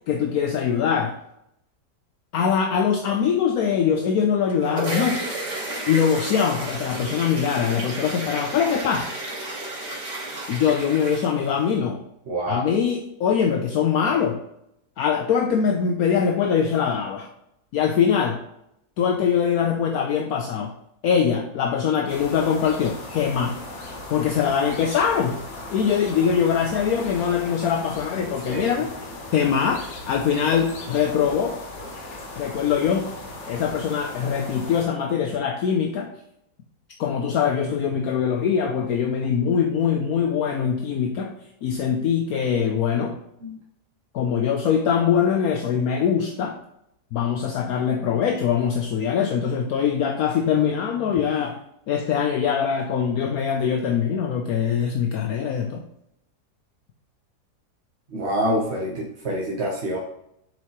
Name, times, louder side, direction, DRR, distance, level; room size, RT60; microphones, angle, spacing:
voice 1, 0.1-1.1 2.3-5.3 5.9-9.1 10.5-12.0 12.5-14.4 15.0-17.3 17.7-18.4 19.0-20.7 21.0-23.6 24.1-25.4 25.7-28.9 29.3-31.6 32.4-33.1 33.4-36.1 37.0-41.3 41.6-43.2 44.1-46.6 47.1-51.6 51.9-55.8, left 7 dB, 70° left, 4 dB, 1.1 m, -22 dB
sound 1, 4.3-11.8, right 1 dB, 70° right, 3.1 m, -32 dB
voice 2, 12.3-12.6 28.5-28.8 43.4-43.6 58.1-60.0, equal, 45° right, -2 dB, 1.2 m, -26 dB
sound 2, 22.1-34.8, left 2 dB, 45° left, 1.5 m, -37 dB
7.3 x 5.1 x 3.0 m, 0.77 s
omnidirectional pair, 1.7 m